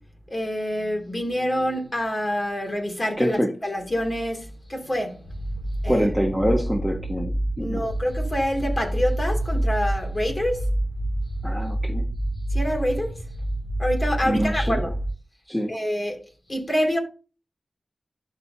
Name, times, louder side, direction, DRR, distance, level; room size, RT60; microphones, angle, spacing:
voice 1, 0.3-6.1 7.6-10.7 12.5-13.1 13.8-14.9 15.7-16.2 16.5-17.0, equal, 35° left, 2.9 m, -27 dB
voice 2, 3.2-3.5 5.9-7.9 11.4-12.1 14.2-14.8 15.5-15.7, equal, 5° left, 1.4 m, -25 dB
sound 1, 5.2-15.1, right 1 dB, 70° left, 2.7 m, -27 dB
12.0 x 4.7 x 2.9 m
cardioid pair, 55°, 0 cm